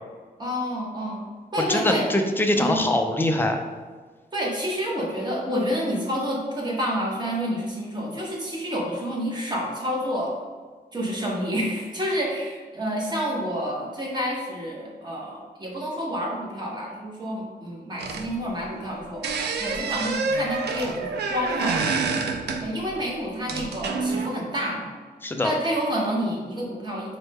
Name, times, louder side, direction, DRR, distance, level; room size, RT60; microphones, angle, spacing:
voice 1, 0.4-1.3 1.5-2.1 2.6-2.9 4.3-10.4 10.9-19.2 19.6-21.9 22.6-24.9 25.4-27.2, equal, 25° right, -3 dB, 0.9 m, -29 dB
voice 2, 1.7-3.6 25.2-25.5, left 1 dB, 15° left, 4 dB, 0.3 m, -23 dB
sound 1, 18.0-18.9 19.2-23.0 23.5-24.3, right 4 dB, 80° right, 0.4 m, -27 dB
4.2 x 2.1 x 3.3 m, 1.5 s
wide cardioid pair, 140°, 17 cm